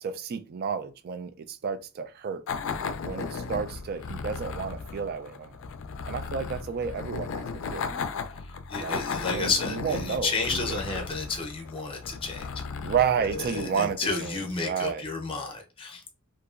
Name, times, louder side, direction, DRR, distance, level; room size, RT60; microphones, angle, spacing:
voice 1, 0.0-2.4 3.0-5.6 6.1-7.9 8.8-11.0 12.8-15.1, right 6 dB, 45° right, 0.3 m, -31 dB
sound 1, 2.5-14.6, left 5 dB, 65° left, 0.4 m, -36 dB
voice 2, 8.7-12.4 13.3-16.1, left 4 dB, 25° left, 0.6 m, -31 dB
2.8 x 2.5 x 2.4 m
head